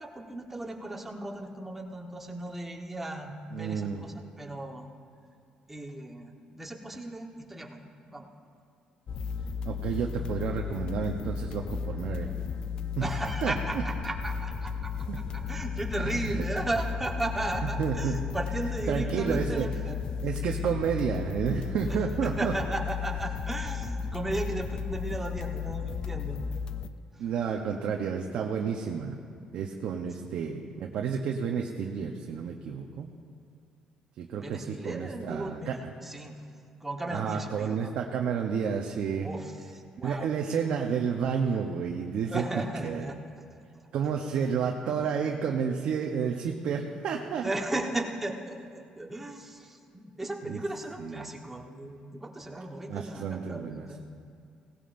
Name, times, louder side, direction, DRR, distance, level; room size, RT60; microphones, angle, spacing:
voice 1, 0.0-4.9 5.7-8.3 13.0-20.0 21.9-26.6 34.3-36.3 36.8-37.9 39.2-40.3 42.3-43.2 47.4-54.0, right 1 dB, 10° right, 1 dB, 1.2 m, -36 dB
voice 2, 3.5-4.1 9.7-12.3 13.0-13.1 13.4-13.8 15.1-15.2 16.0-16.4 17.6-18.2 18.9-19.7 20.2-22.5 27.2-29.2 29.5-33.1 34.2-35.9 37.1-39.3 40.0-42.4 42.8-43.0 43.9-47.5 50.5-50.6 51.0-51.3 52.9-53.9, right 7 dB, 65° right, 1 dB, 0.8 m, -30 dB
sound 1, 9.1-26.9, left 6 dB, 45° left, 0.4 m, -34 dB
17.5 x 16.5 x 2.6 m, 2.4 s
cardioid pair, 130°, 2 cm